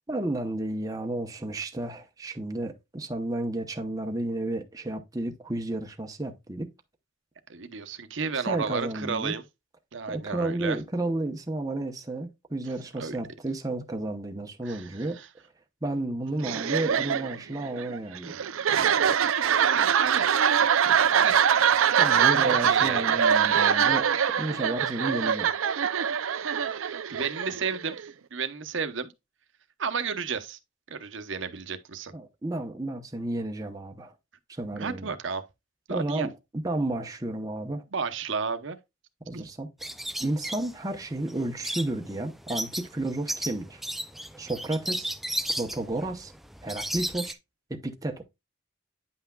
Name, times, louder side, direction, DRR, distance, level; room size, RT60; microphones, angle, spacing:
voice 1, 0.1-6.7 8.3-9.3 10.1-15.2 15.8-18.4 22.0-24.1 24.4-25.5 32.1-34.1 34.5-35.1 35.9-37.8 39.3-39.7 40.2-43.8 44.4-45.1 45.6-46.3 46.6-47.4 47.7-48.2, right 2 dB, 15° right, 0.8 m, -32 dB
voice 2, 7.5-9.4 9.9-10.8 12.9-13.2 14.6-14.9 15.2-15.3 19.4-20.3 21.1-21.4 22.3-23.2 26.6-29.1 29.8-30.6 30.9-32.1 34.8-35.4 35.9-36.3 37.9-38.8 39.3-39.5, right 5 dB, 65° right, 0.8 m, -32 dB
sound 1, 16.4-28.1, right 8 dB, 85° right, 0.5 m, -24 dB
sound 2, 39.8-47.3, right 1 dB, ahead, 0.3 m, -34 dB
9.6 x 5.7 x 2.3 m
head